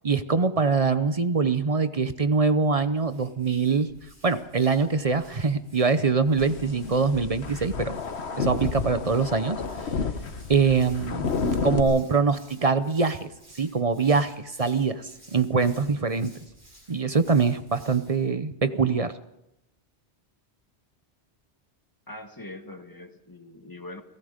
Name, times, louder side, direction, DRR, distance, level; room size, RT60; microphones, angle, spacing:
voice 1, 0.0-3.9 4.2-8.0 8.4-9.6 10.5-13.3 13.6-16.3 16.9-19.1, right 4 dB, 35° right, 12 dB, 0.8 m, -23 dB
Hands, 2.9-18.3, right 1 dB, 75° right, 6.9 m, -55 dB
sound 1, 6.4-11.8, left 5 dB, 75° left, 1.5 m, -30 dB
voice 2, 22.1-24.0, left 2 dB, 20° left, 6 dB, 1.6 m, -42 dB
29.0 x 18.0 x 5.1 m, 0.87 s
omnidirectional pair, 1.1 m